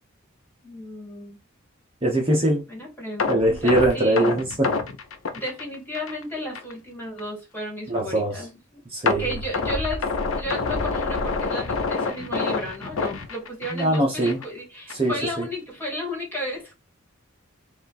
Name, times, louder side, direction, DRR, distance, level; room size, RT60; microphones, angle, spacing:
voice 1, 0.6-1.4 2.7-4.3 5.3-8.8 9.2-10.1 10.4-16.8, equal, 10° left, 2.0 m, -33 dB
voice 2, 2.0-2.6 3.3-4.7 7.9-8.3 8.9-9.3 13.7-14.4 14.9-15.4, right 1 dB, 30° right, 0.9 m, -22 dB
sound 1, 3.2-6.2 6.5-6.7 7.2-7.3 9.1-14.0 14.3-14.5 14.9-15.0, left 4 dB, 85° left, 0.7 m, -27 dB
4.8 x 2.6 x 4.0 m
head